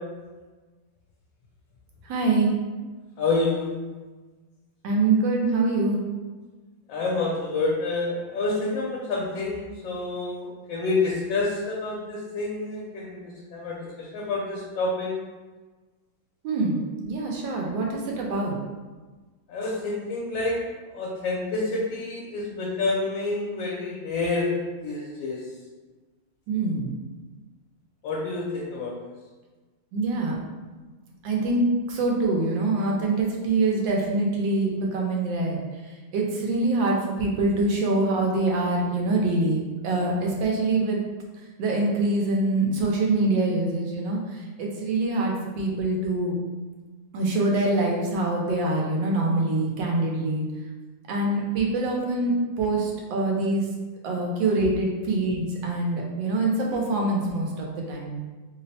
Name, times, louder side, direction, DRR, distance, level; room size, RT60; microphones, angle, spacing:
voice 1, 2.1-2.5 4.8-6.0 16.4-16.8 17.1-18.5 26.5-26.9 29.9-30.3 31.2-35.6 36.1-41.0 41.6-44.2 44.6-46.4 47.1-50.4 51.1-53.6 54.0-58.2, right 2 dB, 80° right, -1 dB, 1.4 m, -24 dB
voice 2, 3.2-3.8 6.9-15.2 19.5-20.6 20.9-24.5 24.8-25.4 28.0-29.0, left 3 dB, 80° left, -4 dB, 1.3 m, -28 dB
3.5 x 2.0 x 4.0 m, 1.3 s
omnidirectional pair, 2.0 m